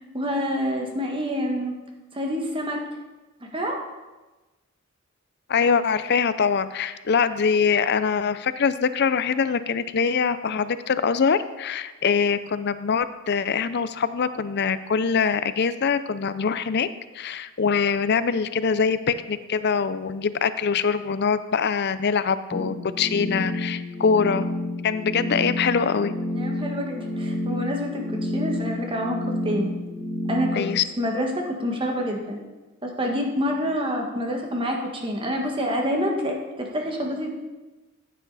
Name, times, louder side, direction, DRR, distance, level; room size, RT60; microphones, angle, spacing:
voice 1, 0.1-1.7 2.1-2.8 3.4-3.8 26.3-29.7 30.3-30.6 31.0-32.4 32.8-37.3, equal, 25° right, 1 dB, 1.5 m, -27 dB
voice 2, 5.5-16.9 17.1-24.5 24.8-26.1 30.5-30.8, left 6 dB, 50° left, 13 dB, 0.5 m, -23 dB
sound 1, 22.5-30.6, left 1 dB, ahead, 2.0 m, -29 dB
15.0 x 8.6 x 4.1 m, 1.2 s
head